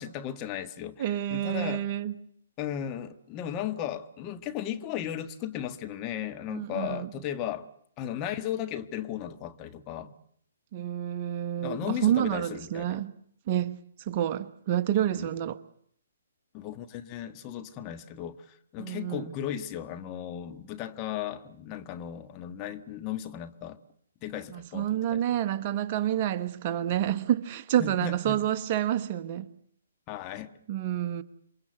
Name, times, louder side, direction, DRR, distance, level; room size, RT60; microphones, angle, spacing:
voice 1, 0.0-1.8 2.6-7.7 8.0-10.2 11.6-13.0 15.2-15.3 16.5-23.8 24.2-25.2 27.8-28.4 30.1-30.5, left 10 dB, 25° left, 1.6 m, -36 dB
voice 2, 1.0-2.1 6.5-7.1 10.7-13.1 13.5-15.6 18.8-19.3 24.5-29.5 30.7-31.2, right 11 dB, 40° right, 1.3 m, -28 dB
28.0 x 23.5 x 8.0 m
hypercardioid pair, 135°, 0 cm